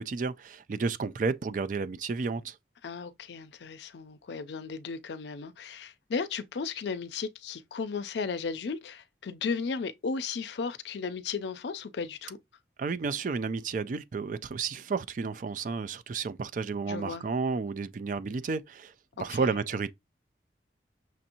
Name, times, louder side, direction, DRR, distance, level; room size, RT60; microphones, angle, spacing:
voice 1, 0.0-2.6 12.8-18.9 19.2-19.9, right 4 dB, 45° right, 0.3 m, -32 dB
voice 2, 2.8-12.4 16.9-17.3 19.2-19.5, left 5 dB, 70° left, 0.4 m, -35 dB
6.1 x 2.6 x 2.8 m
head